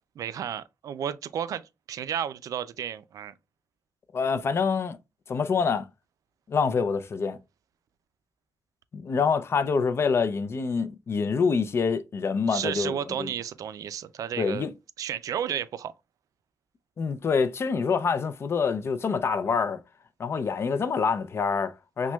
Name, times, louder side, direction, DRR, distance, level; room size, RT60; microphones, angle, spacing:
voice 1, 0.2-3.3 12.5-14.7 15.0-15.9, right 9 dB, 75° right, 0.3 m, -32 dB
voice 2, 4.1-5.0 5.3-5.8 6.5-7.4 8.9-13.3 14.4-14.7 17.0-19.8 20.2-22.1, left 5 dB, 45° left, 0.4 m, -26 dB
5.8 x 2.2 x 2.2 m
cardioid pair, 110°, 6 cm